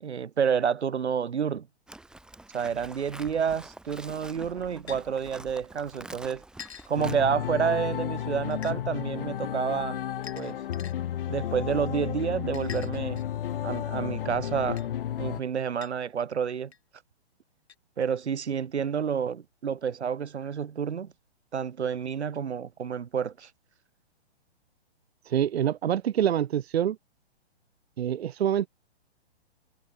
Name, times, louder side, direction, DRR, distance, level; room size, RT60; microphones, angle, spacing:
voice 1, 0.0-1.7 2.5-6.4 6.9-10.0 10.3-10.6 11.3-13.2 13.6-14.9 15.2-16.7 18.0-21.1 21.5-23.5, right 7 dB, 90° right, 1.3 m, -29 dB
Livestock farm animals working animals, 1.9-7.2, right 2 dB, ahead, 1.2 m, -46 dB
sound 1, 4.9-5.0 6.6-6.9 8.5-8.8 10.2-10.9 12.5-13.4 14.8-14.9 15.8-15.9 16.7-16.8 17.7-17.8, left 7 dB, 75° left, 6.6 m, -44 dB
sound 2, 7.0-15.4, left 11 dB, 55° left, 4.0 m, -32 dB
voice 2, 25.2-27.0 28.0-28.7, right 10 dB, 70° right, 0.8 m, -26 dB
hypercardioid pair, 145°, 33 cm